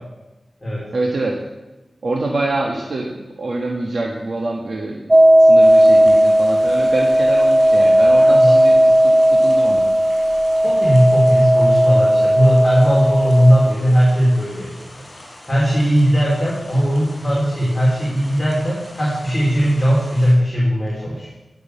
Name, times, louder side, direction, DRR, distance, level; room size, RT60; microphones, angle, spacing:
voice 1, 0.9-1.4 2.0-9.9, right 2 dB, 70° right, 0 dB, 1.5 m, -25 dB
sound 1, 5.1-13.7, equal, 15° right, 0.5 m, -14 dB
sound 2, 5.6-20.3, left 1 dB, 35° left, 5.2 m, -42 dB
voice 2, 8.1-8.5 10.6-15.1 15.5-21.3, equal, 15° left, -6 dB, 4.0 m, -17 dB
14.0 x 6.6 x 8.2 m, 1.1 s
wide cardioid pair, 90°, 0 cm